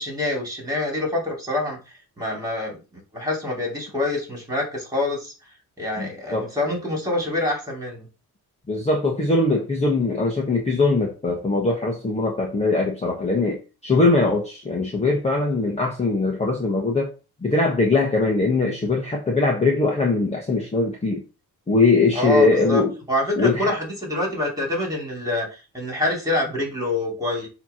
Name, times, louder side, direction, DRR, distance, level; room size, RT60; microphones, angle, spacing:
voice 1, 0.0-1.8 2.2-2.8 3.1-5.3 5.8-8.1 22.1-22.8 23.1-27.5, left 2 dB, 10° right, 0 dB, 2.9 m, -26 dB
voice 2, 6.0-6.5 8.7-17.1 17.4-21.2 21.7-22.9 23.4-23.7, left 3 dB, 15° left, 0 dB, 1.1 m, -21 dB
7.1 x 3.0 x 5.7 m, 0.31 s
wide cardioid pair, 175°, 39 cm